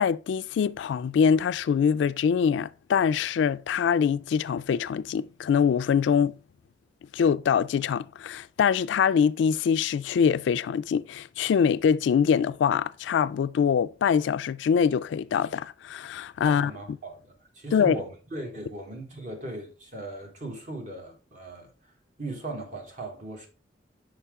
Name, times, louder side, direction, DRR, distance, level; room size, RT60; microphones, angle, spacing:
voice 1, 0.0-6.4 7.1-16.7 17.7-18.0, left 7 dB, 85° left, 0.3 m, -24 dB
voice 2, 16.4-21.7 22.2-23.5, right 2 dB, 45° right, 1.4 m, -38 dB
5.6 x 4.8 x 3.5 m
head